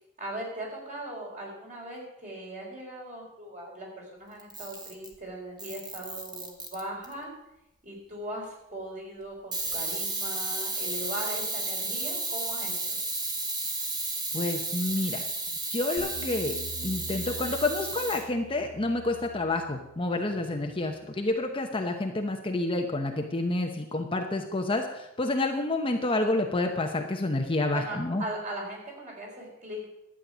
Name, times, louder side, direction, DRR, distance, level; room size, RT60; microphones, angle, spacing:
voice 1, 0.2-7.3 7.8-13.0 27.7-29.9, right 1 dB, 35° right, -2 dB, 4.3 m, -39 dB
Camera, 4.4-5.2 5.6-7.1 9.5-18.2, right 2 dB, 20° right, 1.6 m, -33 dB
voice 2, 14.3-15.2 15.7-16.6 16.8-28.2, left 2 dB, 25° left, 3 dB, 0.9 m, -29 dB
sound 1, 16.0-21.2, right 1 dB, 80° right, 2.2 m, -45 dB
12.0 x 8.8 x 6.2 m, 0.87 s
head